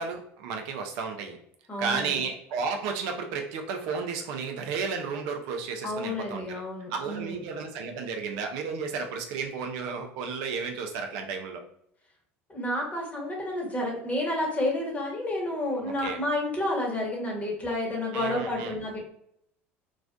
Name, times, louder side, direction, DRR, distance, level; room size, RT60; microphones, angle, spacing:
voice 1, 0.0-1.4 1.8-6.6 6.9-11.6 15.8-16.2 18.1-18.8, right 5 dB, 65° right, 4 dB, 0.4 m, -33 dB
voice 2, 1.7-2.2 5.8-7.4 12.5-19.0, left 1 dB, 20° left, -1 dB, 1.0 m, -30 dB
2.4 x 2.1 x 2.4 m, 0.71 s
hypercardioid pair, 75°, 7 cm